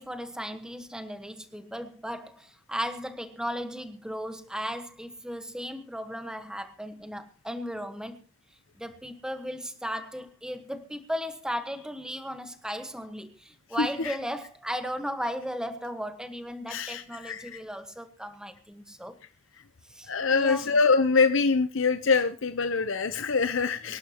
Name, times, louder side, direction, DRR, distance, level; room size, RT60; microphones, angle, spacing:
voice 1, 0.0-8.2 8.8-19.2 19.9-20.8 23.9-24.0, equal, 5° right, 8 dB, 1.4 m, -36 dB
voice 2, 13.8-14.2 16.7-17.6 20.1-24.0, left 4 dB, 70° left, 10 dB, 0.8 m, -25 dB
24.5 x 11.5 x 3.0 m, 0.31 s
head